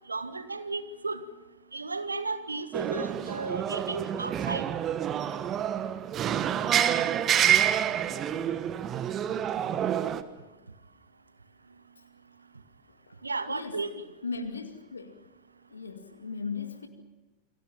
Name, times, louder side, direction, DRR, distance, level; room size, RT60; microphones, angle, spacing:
voice 1, 0.1-1.2 1.7-4.7 13.2-14.0, right 3 dB, 80° right, 1.6 m, -34 dB
sound 1, 2.7-10.2, right 10 dB, 30° right, 1.3 m, -28 dB
voice 2, 12.9-13.2 13.5-13.8 14.2-15.2 15.7-16.9, left 4 dB, 75° left, 2.2 m, -37 dB
29.0 x 22.0 x 5.7 m
figure-of-eight pair, 90°, 0 cm